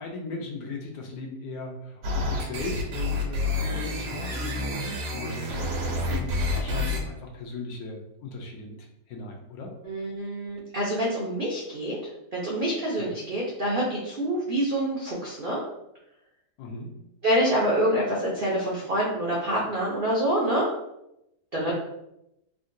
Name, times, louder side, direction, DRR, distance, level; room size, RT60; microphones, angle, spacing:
voice 1, 0.0-9.7 13.0-13.2 16.6-17.0 21.7-21.8, left 3 dB, 70° left, 1 dB, 1.0 m, -38 dB
sound 1, 2.0-7.0, left 2 dB, 85° right, 1.3 m, -29 dB
voice 2, 9.8-12.0 12.3-15.6 17.2-20.7 21.5-21.7, right 1 dB, 65° right, -5 dB, 0.5 m, -26 dB
3.7 x 2.2 x 2.5 m, 0.83 s
omnidirectional pair, 1.7 m